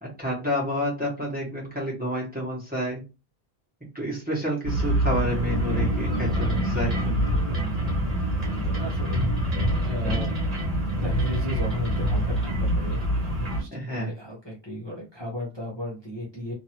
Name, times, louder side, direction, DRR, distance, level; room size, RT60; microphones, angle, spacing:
voice 1, 0.2-3.0 3.9-7.3 8.6-8.9 13.7-14.1, equal, 10° right, -5 dB, 1.3 m, -29 dB
sound 1, 4.6-13.6, equal, 35° right, 1.3 m, -25 dB
voice 2, 7.2-7.9 8.7-9.3 9.7-10.3 10.9-16.5, equal, 25° left, -5 dB, 1.0 m, -35 dB
2.8 x 2.7 x 2.9 m, 0.29 s
omnidirectional pair, 1.1 m